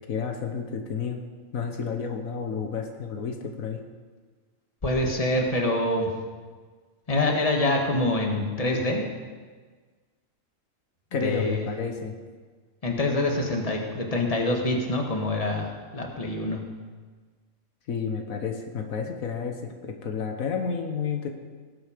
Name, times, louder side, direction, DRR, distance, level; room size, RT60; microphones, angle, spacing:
voice 1, 0.1-1.2 1.5-3.8 11.1-12.2 17.9-21.3, left 6 dB, 80° left, 4 dB, 1.5 m, -31 dB
voice 2, 4.8-6.1 7.1-9.0 11.1-11.7 12.8-16.6, left 1 dB, 25° left, 2 dB, 1.7 m, -25 dB
18.5 x 8.0 x 5.1 m, 1.5 s
omnidirectional pair, 1.4 m